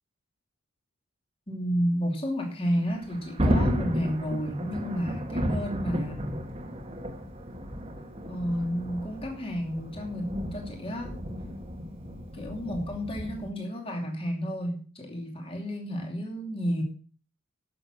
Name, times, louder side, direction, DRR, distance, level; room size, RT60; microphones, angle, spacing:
voice 1, 1.5-6.4 8.3-11.2 12.3-16.8, equal, 25° left, 2 dB, 2.7 m, -31 dB
Thunder, 2.8-13.5, equal, 25° right, 1.5 m, -33 dB
11.5 x 7.0 x 6.2 m, 0.39 s
head